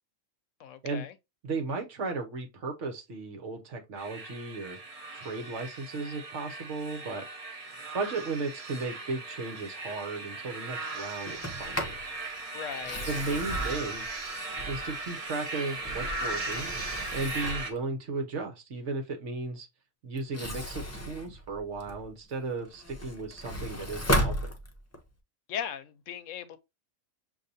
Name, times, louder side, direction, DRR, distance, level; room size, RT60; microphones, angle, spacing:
voice 1, 0.6-1.1 12.5-13.1 25.5-26.6, left 8 dB, 75° left, 0.9 m, -38 dB
voice 2, 1.4-4.8 5.1-7.2 7.9-11.9 13.1-14.0 14.7-16.7 17.1-19.7 20.0-24.5, right 3 dB, 65° right, 1.3 m, -35 dB
sound 1, 4.0-17.7, right 2 dB, 35° right, 0.7 m, -38 dB
Sliding door, 11.3-12.1 12.7-15.1 15.6-17.8 20.2-22.1 22.6-25.1, equal, 20° left, 0.5 m, -34 dB
6.4 x 2.7 x 2.7 m
omnidirectional pair, 1.4 m